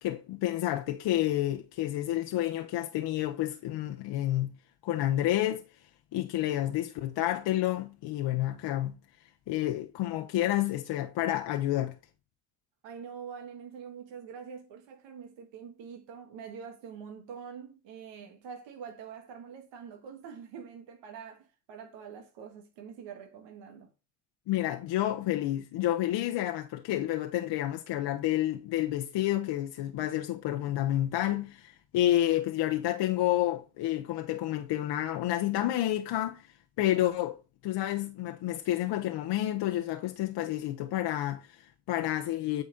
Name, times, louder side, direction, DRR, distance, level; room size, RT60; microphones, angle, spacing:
voice 1, 0.0-4.5 4.8-5.6 6.1-8.9 9.5-12.0 24.5-42.6, left 14 dB, 65° left, 0.9 m, -30 dB
voice 2, 12.8-23.9, right 7 dB, 70° right, 1.6 m, -45 dB
8.8 x 4.1 x 3.9 m
supercardioid pair, 80°, 46 cm